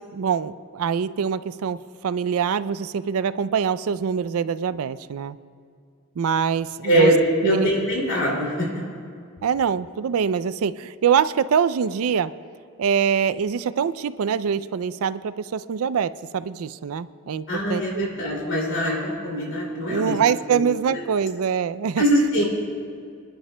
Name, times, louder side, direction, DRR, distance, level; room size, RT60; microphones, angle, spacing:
voice 1, 0.0-5.4 6.2-7.1 7.4-7.7 9.4-12.3 12.8-18.1 19.9-22.0, right 7 dB, 75° right, 16 dB, 0.4 m, -24 dB
voice 2, 6.8-7.2 7.4-8.7 17.5-20.1 20.5-20.7 22.0-22.4, equal, 60° left, -3 dB, 2.6 m, -22 dB
26.5 x 11.5 x 2.2 m, 2.3 s
head